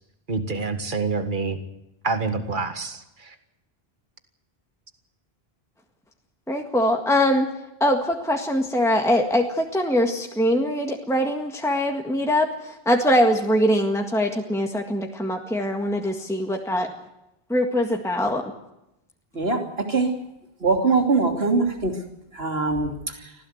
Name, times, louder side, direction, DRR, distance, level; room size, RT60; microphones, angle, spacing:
voice 1, 0.3-1.6 2.0-3.0, right 4 dB, 55° right, 8 dB, 2.0 m, -26 dB
voice 2, 6.5-7.5 7.8-12.5 12.9-16.9 17.5-18.4, equal, 5° left, 2 dB, 1.7 m, -22 dB
voice 3, 20.6-21.9 22.3-22.9, right 4 dB, 75° right, 3 dB, 3.2 m, -21 dB
25.0 x 16.5 x 8.1 m, 0.88 s
omnidirectional pair, 1.0 m